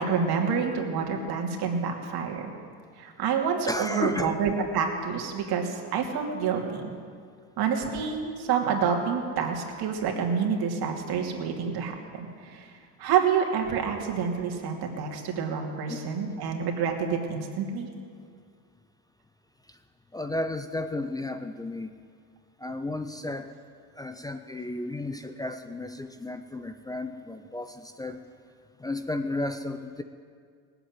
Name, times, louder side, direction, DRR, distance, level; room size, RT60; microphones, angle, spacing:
voice 1, 0.0-2.5 3.0-6.9 7.6-12.7 13.0-17.9, right 6 dB, 45° right, 1 dB, 2.8 m, -28 dB
voice 2, 3.7-4.3 15.9-16.0 19.7-19.8 20.1-21.9 22.6-23.5 24.0-28.2 28.8-30.0, left 2 dB, 10° left, 8 dB, 0.4 m, -33 dB
18.0 x 8.2 x 9.7 m, 2.1 s
supercardioid pair, 115°, 50 cm